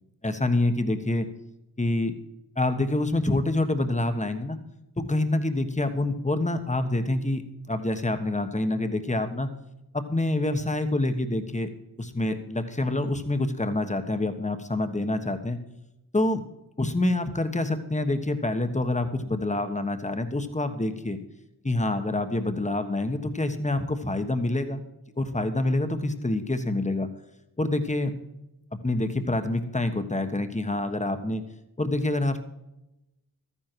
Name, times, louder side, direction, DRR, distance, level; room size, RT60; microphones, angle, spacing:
voice 1, 0.2-1.3 1.8-2.1 2.6-4.6 5.0-9.5 9.9-11.7 12.0-15.6 16.1-16.4 16.8-21.2 21.6-24.8 25.2-27.1 27.6-28.1 28.8-31.4 31.8-32.4, left 2 dB, 20° left, 8 dB, 1.3 m, -26 dB
13.5 x 10.0 x 4.6 m, 0.91 s
wide cardioid pair, 75°, 39 cm